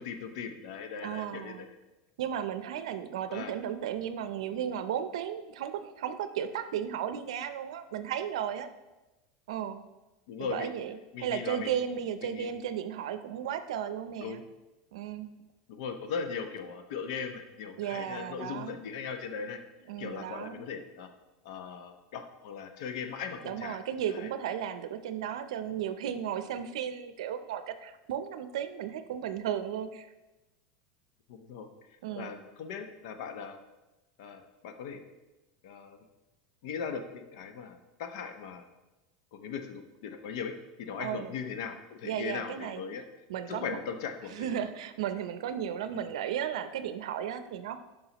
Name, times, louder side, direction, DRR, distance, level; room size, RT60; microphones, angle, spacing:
voice 1, 0.0-1.7 3.3-3.5 10.3-10.7 11.1-11.7 12.2-12.5 14.2-14.4 15.7-19.6 20.0-21.1 21.4-23.8 24.1-24.3 31.3-31.7 32.1-33.6 34.2-35.0 35.6-36.0 36.6-38.7 39.3-40.5 40.8-43.0 43.5-44.5, left 6 dB, 70° left, 7 dB, 0.9 m, -39 dB
voice 2, 1.0-1.7 2.2-8.7 9.5-9.8 10.4-14.4 14.9-15.3 17.8-18.9 19.9-20.6 23.4-30.1 32.0-32.3 41.0-41.3 42.0-42.8 43.3-43.8 44.2-47.8, right 9 dB, 85° right, 10 dB, 0.6 m, -35 dB
11.0 x 5.4 x 3.0 m, 1.1 s
supercardioid pair, 145°, 3 cm